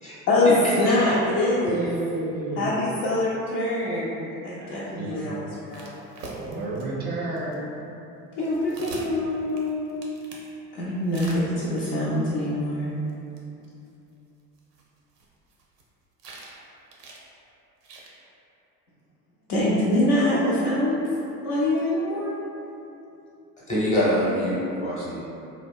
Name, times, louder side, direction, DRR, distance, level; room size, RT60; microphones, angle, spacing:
voice 1, 0.8-1.8 2.6-5.9 8.3-10.0 10.7-12.9 19.5-21.0 21.4-22.4, left 1 dB, 50° left, -8 dB, 0.5 m, -24 dB
voice 2, 1.6-2.7 4.6-5.3 6.3-7.6, right 2 dB, 20° right, -3 dB, 0.4 m, -31 dB
sound 1, 5.7-6.9 7.4-7.5 8.4-10.5 11.1-11.8 13.1-13.2 13.4-13.5 13.6-13.7 14.6-15.8 16.2-16.6 16.9-17.2 17.8-18.1, right 2 dB, 80° right, 0.6 m, -42 dB
voice 3, 23.7-25.2, equal, 15° left, -8 dB, 0.8 m, -24 dB
2.7 x 2.0 x 2.3 m, 2.8 s
figure-of-eight pair, 70°, 48 cm